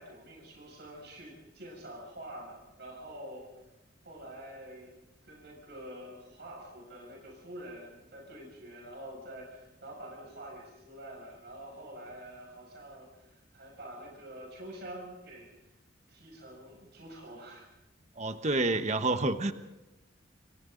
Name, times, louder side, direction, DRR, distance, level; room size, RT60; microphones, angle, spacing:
voice 1, 0.0-3.5 4.0-5.0 5.2-15.5 16.1-17.7, right 1 dB, 60° right, -1 dB, 6.7 m, -46 dB
voice 2, 18.2-19.5, right 2 dB, 35° right, 8 dB, 1.2 m, -28 dB
29.0 x 27.0 x 4.0 m, 1.0 s
head